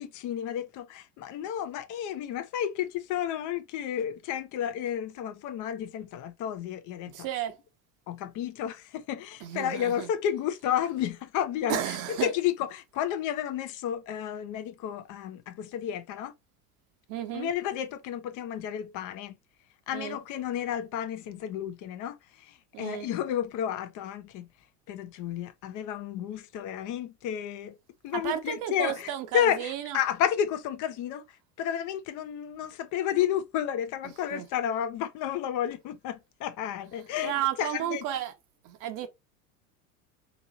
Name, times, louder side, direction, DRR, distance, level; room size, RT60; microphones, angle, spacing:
voice 1, 0.0-7.3 8.1-16.3 17.3-19.3 19.9-24.5 24.9-27.7 28.0-31.2 31.6-38.0, left 10 dB, 45° left, 0.6 m, -31 dB
voice 2, 7.1-7.6 9.4-10.1 11.7-12.3 17.1-17.5 19.9-20.2 22.7-23.1 28.1-30.0 34.3-34.5 37.2-38.3 38.6-39.1, right 11 dB, 45° right, 0.8 m, -33 dB
3.0 x 2.7 x 3.9 m
figure-of-eight pair, 75°, 45 cm